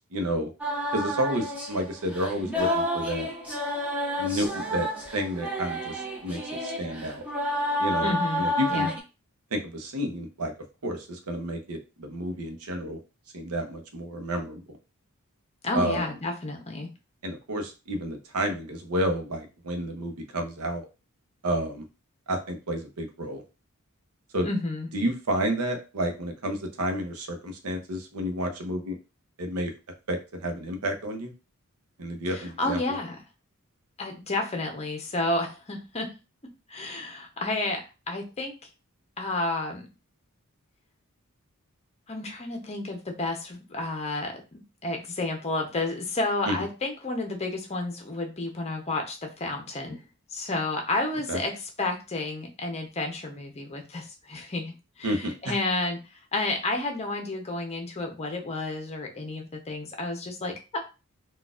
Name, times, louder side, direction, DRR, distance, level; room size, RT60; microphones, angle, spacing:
voice 1, 0.1-0.5 0.9-3.3 4.2-7.2 7.8-8.9 9.5-10.5 10.8-13.0 13.3-14.6 15.7-16.0 17.2-20.9 21.4-21.8 22.3-23.4 24.3-24.5 24.9-29.0 29.4-29.7 30.1-31.3 32.0-33.0 46.4-46.7 51.3-51.4 55.0-55.6, equal, 85° right, 5 dB, 0.7 m, -30 dB
sound 1, 0.6-9.0, equal, 5° right, 0.9 m, -30 dB
voice 2, 8.0-8.4 8.7-8.9 15.6-16.9 24.4-24.9 32.3-33.2 34.0-36.1 36.7-37.8 38.1-38.5 39.2-39.8 42.1-50.0 50.3-51.5 51.8-56.0 56.3-60.8, left 2 dB, 30° left, 3 dB, 0.7 m, -31 dB
3.9 x 2.4 x 2.4 m, 0.30 s
head